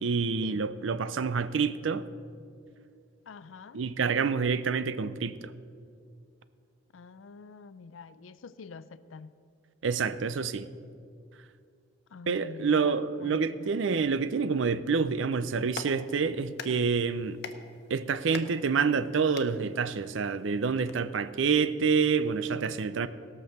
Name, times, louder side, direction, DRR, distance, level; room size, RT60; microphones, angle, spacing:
voice 1, 0.0-2.1 3.7-5.5 9.8-10.7 12.3-17.4 17.9-23.1, right 5 dB, 70° right, 0.5 m, -27 dB
voice 2, 3.3-3.8 6.9-9.3 12.1-13.7, left 4 dB, 85° left, 0.5 m, -46 dB
Clapping, 15.4-20.9, left 5 dB, 60° left, 0.8 m, -46 dB
17.0 x 6.2 x 6.6 m
head